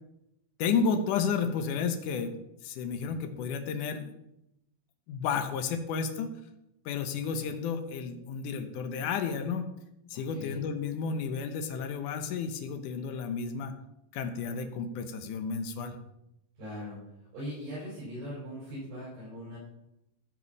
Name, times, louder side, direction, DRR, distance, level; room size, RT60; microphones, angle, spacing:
voice 1, 0.6-2.3 2.6-4.1 5.1-6.3 6.9-9.7 10.1-13.7 14.1-16.0, left 5 dB, 70° left, 7 dB, 2.1 m, -32 dB
voice 2, 10.1-10.6 16.6-17.0 17.3-19.6, equal, 75° right, -8 dB, 7.5 m, -40 dB
15.0 x 6.1 x 5.4 m, 0.85 s
omnidirectional pair, 4.7 m